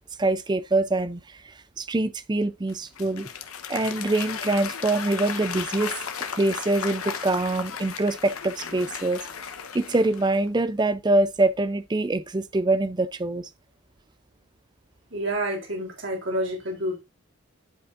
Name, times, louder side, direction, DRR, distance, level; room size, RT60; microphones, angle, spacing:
voice 1, 0.2-1.4 1.8-3.3 3.7-6.0 6.4-9.2 9.7-13.5, right 2 dB, 20° right, 0.4 m, -24 dB
Applause / Crowd, 2.7-10.5, left 7 dB, 90° left, 1.1 m, -35 dB
voice 2, 15.1-17.0, right 1 dB, 60° right, 3.2 m, -28 dB
11.5 x 5.3 x 2.5 m
head